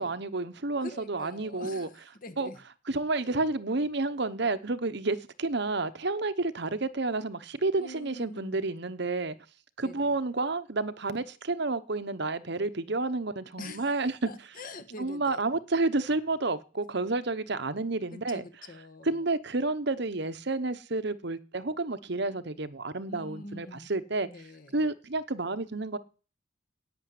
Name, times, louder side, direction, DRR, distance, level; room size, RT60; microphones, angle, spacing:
voice 1, 0.0-1.9 2.4-2.5 2.9-9.4 9.8-14.3 15.0-18.4 19.1-24.3 24.7-26.0, right 3 dB, 55° right, 1.0 m, -30 dB
voice 2, 0.8-2.6 7.8-8.7 9.8-10.2 13.6-13.9 14.3-15.4 18.1-19.2 23.1-23.9 24.2-24.9, left 1 dB, 45° left, 1.5 m, -45 dB
11.0 x 9.3 x 9.4 m
head